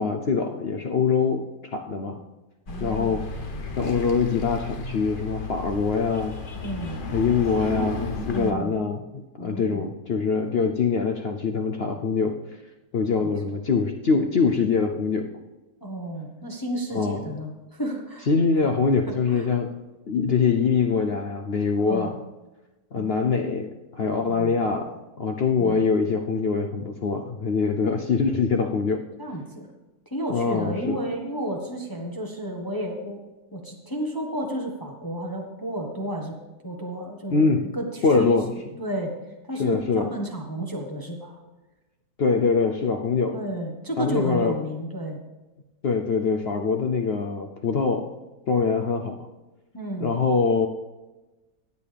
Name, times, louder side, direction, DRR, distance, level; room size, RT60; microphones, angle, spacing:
voice 1, 0.0-1.4 1.7-2.2 2.8-3.3 3.8-6.4 7.1-9.0 9.3-12.4 12.9-15.3 16.9-17.2 18.3-19.7 20.1-22.2 22.9-24.9 25.2-29.0 30.3-31.0 37.3-37.7 38.0-38.5 39.6-40.1 42.2-43.4 44.0-44.6 45.8-48.1 48.5-49.2 50.0-50.7, left 5 dB, 55° left, 4 dB, 0.7 m, -23 dB
sound 1, 2.7-8.5, left 3 dB, 35° left, 1.0 m, -33 dB
voice 2, 2.7-3.2 6.5-7.0 8.3-8.7 9.4-9.9 13.2-13.3 15.8-18.3 19.1-19.5 21.8-22.1 23.0-23.3 24.3-24.6 25.6-25.8 29.2-29.7 30.1-33.2 33.5-36.4 36.6-38.4 38.8-39.1 39.4-41.4 43.3-45.2 49.7-50.1, right 1 dB, 15° left, 0 dB, 1.2 m, -32 dB
16.5 x 9.3 x 3.4 m, 1.1 s
omnidirectional pair, 1.8 m